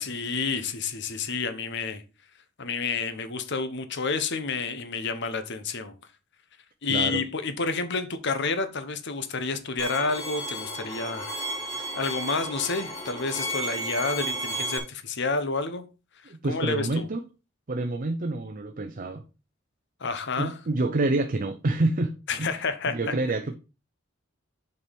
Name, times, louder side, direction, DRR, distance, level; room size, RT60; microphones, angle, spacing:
voice 1, 0.0-2.0 2.6-5.9 6.8-11.3 11.8-15.8 16.2-17.1 20.0-20.6 22.3-23.0, left 4 dB, 60° left, 1.1 m, -29 dB
voice 2, 6.9-7.2 16.3-17.2 17.7-19.2 20.4-22.6 22.9-23.5, right 2 dB, 45° right, 0.7 m, -27 dB
Bowed string instrument, 9.8-14.8, right 1 dB, 20° left, 2.4 m, -33 dB
7.2 x 4.6 x 5.2 m
head